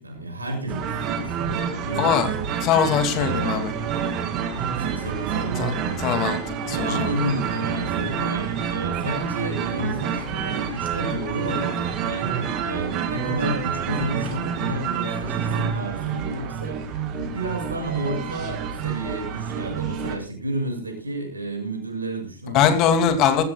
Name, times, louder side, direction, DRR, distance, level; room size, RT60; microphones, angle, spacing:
voice 1, 0.0-2.1 2.4-2.5 3.1-3.7 4.5-6.3 6.7-22.7 23.1-23.2, right 1 dB, 80° right, 4 dB, 7.0 m, -31 dB
sound 1, 0.7-20.2, right 7 dB, 35° right, 2.9 m, -28 dB
voice 2, 2.0-2.3 2.6-3.7 5.6-5.7 6.0-7.1 22.5-23.4, left 8 dB, 40° left, 7 dB, 2.7 m, -21 dB
21.0 x 15.5 x 2.4 m, 0.32 s
figure-of-eight pair, 90°, 0 cm